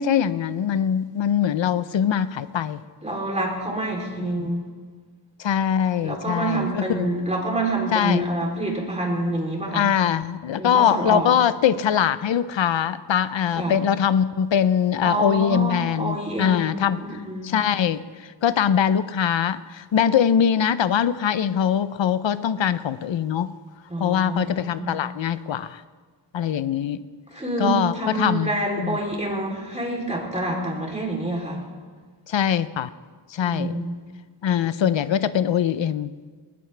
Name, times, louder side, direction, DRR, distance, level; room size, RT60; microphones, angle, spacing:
voice 1, 0.0-2.8 4.2-4.5 5.4-7.1 7.9-8.2 9.7-17.0 17.4-18.0 18.4-23.5 24.0-25.8 26.3-27.0 27.6-28.5 28.8-29.0 32.3-32.9 33.3-33.7 34.4-36.1, left 8 dB, 75° left, 14 dB, 0.7 m, -22 dB
voice 2, 3.0-4.7 6.0-9.9 10.6-11.3 13.5-13.8 15.0-17.5 23.9-25.0 27.3-31.7 33.4-34.0, right 2 dB, 15° right, -1 dB, 3.4 m, -27 dB
19.5 x 19.5 x 3.4 m, 1.5 s
wide cardioid pair, 140°, 45 cm